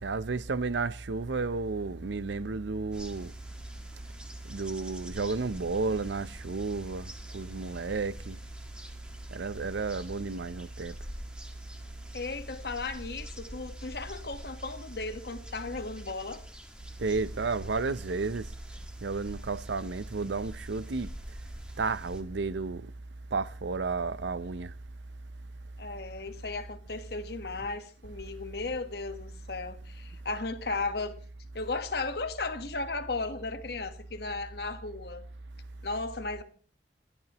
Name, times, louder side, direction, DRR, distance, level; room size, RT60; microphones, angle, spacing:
voice 1, 0.0-3.3 4.5-8.4 9.3-11.0 17.0-18.5 19.0-21.1 21.8-22.9 23.3-24.7, right 4 dB, 90° right, 0.6 m, -32 dB
sound 1, 2.9-22.2, equal, 5° right, 1.7 m, -47 dB
voice 2, 12.1-16.4 25.8-31.2 31.5-35.2 35.8-36.4, left 3 dB, 60° left, 1.4 m, -35 dB
28.0 x 12.0 x 3.0 m
head